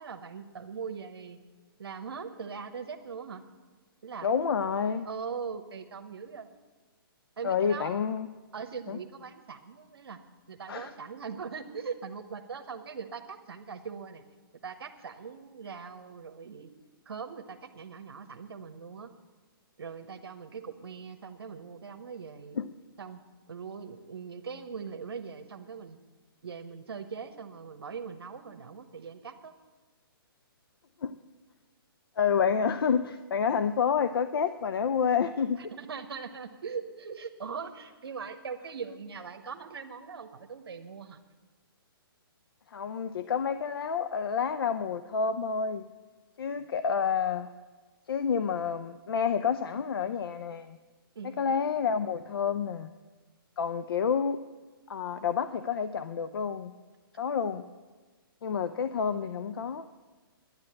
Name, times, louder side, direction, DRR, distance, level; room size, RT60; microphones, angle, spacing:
voice 1, 0.0-1.4 1.8-3.4 4.0-4.3 5.0-6.5 7.4-8.0 8.5-10.2 10.5-14.2 14.6-16.7 17.0-19.1 19.8-22.6 23.0-23.2 23.5-26.0 26.4-29.5 35.6-41.2 51.1-51.6, right 6 dB, 80° right, 5 dB, 1.0 m, -41 dB
voice 2, 4.2-5.1 7.4-8.3 8.9-9.0 10.7-10.9 22.5-22.7 31.0-31.2 32.2-35.7 42.7-45.9 46.4-47.5 48.1-50.8 51.2-52.9 53.6-54.4 54.9-56.7 57.2-57.7 58.4-59.9, left 6 dB, 75° left, 12 dB, 0.6 m, -29 dB
10.5 x 9.8 x 8.7 m, 1.3 s
hypercardioid pair, 150°, 13 cm